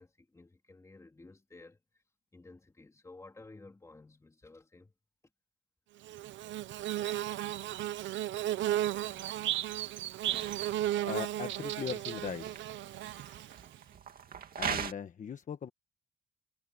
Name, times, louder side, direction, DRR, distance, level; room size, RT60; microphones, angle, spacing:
voice 1, 0.0-2.0 2.3-4.9, left 3 dB, 15° left, 2.6 m, -54 dB
Bird / Buzz, 6.1-13.8, right 13 dB, 80° right, 0.7 m, -34 dB
sound 1, 6.9-14.9, right 7 dB, 50° right, 2.4 m, -44 dB
voice 2, 11.0-12.5 14.5-15.7, left 7 dB, 40° left, 1.2 m, -39 dB
cardioid pair, 135°, 19 cm